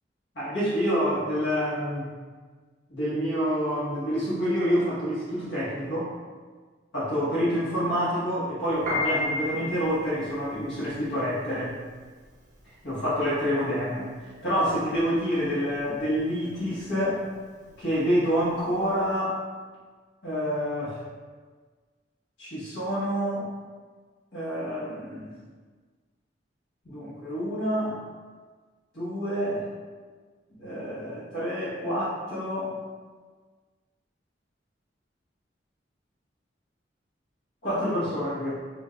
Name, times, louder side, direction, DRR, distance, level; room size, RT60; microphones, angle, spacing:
voice 1, 0.3-2.1 2.9-6.1 6.9-11.8 12.8-17.2 17.8-19.4 20.2-21.0 22.4-23.5 24.3-25.3 26.8-28.0 28.9-29.7 30.6-32.7 37.6-38.5, equal, 65° left, -11 dB, 1.1 m, -27 dB
Piano, 8.7-19.1, left 2 dB, 40° right, 0.7 m, -35 dB
5.4 x 2.2 x 2.3 m, 1.5 s
head